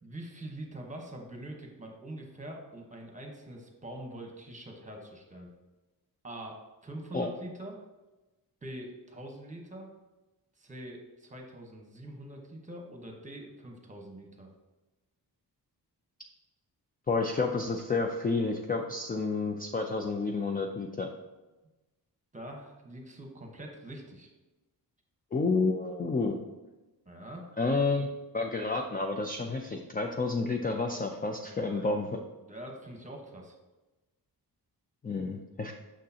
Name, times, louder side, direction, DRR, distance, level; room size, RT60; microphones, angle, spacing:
voice 1, 0.0-5.5 6.2-7.8 8.6-9.9 10.6-14.5 22.3-24.3 27.1-27.5 31.4-32.0 32.4-33.5, right 1 dB, 20° right, 2 dB, 1.1 m, -44 dB
voice 2, 17.1-21.1 25.3-26.4 27.6-28.1 28.3-32.1 35.0-35.7, left 3 dB, 25° left, 3 dB, 0.4 m, -30 dB
6.4 x 6.3 x 2.8 m, 1.1 s
wide cardioid pair, 145°, 40 cm